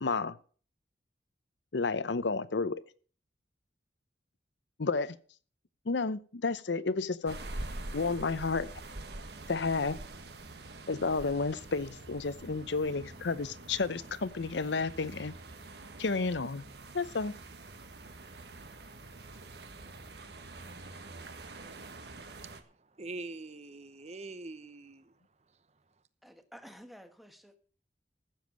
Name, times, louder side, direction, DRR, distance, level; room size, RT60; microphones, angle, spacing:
voice 1, 0.0-0.4 1.7-2.8 4.8-5.2 5.9-7.4 7.9-8.7 9.5-10.0 10.9-15.3 16.0-16.6 16.9-17.4, left 4 dB, 80° left, 0.7 m, -31 dB
sound 1, 7.3-22.6, right 2 dB, 65° right, 1.5 m, -45 dB
voice 2, 22.3-25.1, right 3 dB, 40° right, 0.8 m, -45 dB
voice 3, 26.2-27.6, equal, ahead, 1.2 m, -52 dB
14.5 x 7.3 x 6.1 m
head